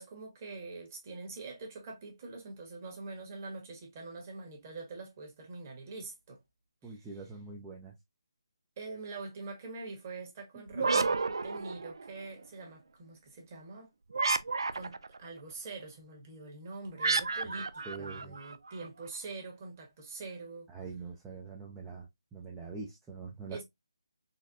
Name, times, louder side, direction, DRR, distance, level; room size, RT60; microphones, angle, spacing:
voice 1, 0.0-6.4 6.8-7.1 8.8-11.2 11.4-13.9 14.7-20.7 23.5-23.6, right 3 dB, 30° right, 1.3 m, -44 dB
voice 2, 6.8-7.9 10.8-11.1 17.9-18.4 20.7-23.6, right 4 dB, 5° right, 0.4 m, -44 dB
sound 1, 10.7-12.3 14.1-15.2 17.0-18.9, right 3 dB, 75° right, 0.4 m, -31 dB
4.1 x 2.2 x 2.5 m
figure-of-eight pair, 160°, 2 cm